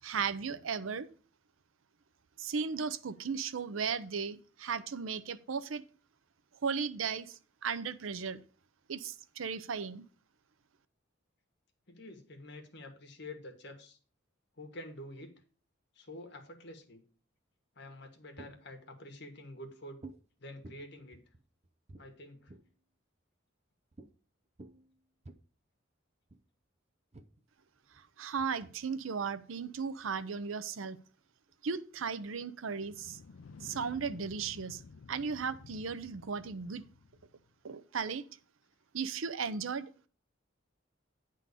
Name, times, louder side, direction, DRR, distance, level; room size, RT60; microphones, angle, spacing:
voice 1, 0.0-1.1 2.4-5.8 6.6-8.4 8.9-10.0 28.2-31.0 31.6-33.2 33.6-34.8 35.1-36.8 37.6-38.2 38.9-39.9, right 5 dB, 90° right, 12 dB, 0.6 m, -36 dB
voice 2, 11.9-14.0 14.6-15.3 15.9-17.0 17.7-20.0 20.4-21.2 22.0-22.5, left 1 dB, 60° left, 4 dB, 1.6 m, -48 dB
sound 1, 17.9-18.8 20.0-20.3 20.6-22.8 23.9-24.1 24.4-25.4 26.3-26.4 27.1-30.5 31.2-31.8 32.2-32.3 32.6-34.4 35.0-35.8, right 2 dB, 35° right, 0.6 m, -55 dB
sound 2, 32.7-37.5, left 4 dB, 80° left, 0.5 m, -53 dB
9.8 x 3.8 x 6.7 m, 0.40 s
head